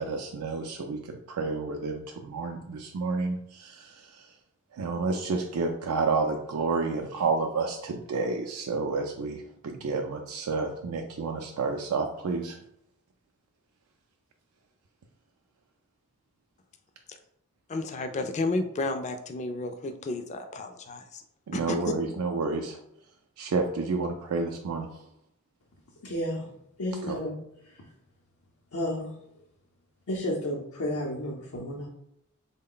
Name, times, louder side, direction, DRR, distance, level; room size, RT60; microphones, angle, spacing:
voice 1, 0.0-4.3 4.7-12.6 21.5-22.8 23.4-25.1 27.1-27.2, right 4 dB, 85° right, 2 dB, 0.4 m, -30 dB
voice 2, 17.7-21.2 21.5-21.9, left 2 dB, 30° left, 7 dB, 0.3 m, -32 dB
voice 3, 26.0-26.5 26.8-27.4 27.6-27.8 28.7-29.2 30.1-31.9, left 1 dB, 85° left, -3 dB, 0.6 m, -32 dB
3.7 x 2.1 x 3.8 m, 0.76 s
head